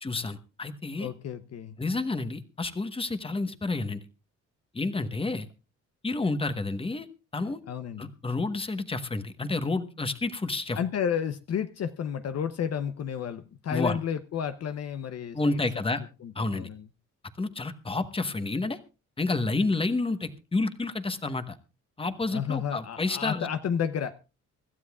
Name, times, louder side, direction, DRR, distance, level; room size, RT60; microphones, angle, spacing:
voice 1, 0.0-1.1 1.8-4.0 4.7-5.5 6.0-7.1 7.3-7.6 8.0-10.8 13.7-14.0 15.3-16.0 16.3-16.7 17.4-18.8 19.2-21.6 22.0-23.5, left 3 dB, 20° left, 1.2 m, -29 dB
voice 2, 1.0-1.8 7.7-8.1 10.7-15.6 16.2-16.9 22.3-24.2, left 8 dB, 55° left, 0.8 m, -31 dB
25.5 x 12.5 x 2.4 m
cardioid pair, 90°, 30 cm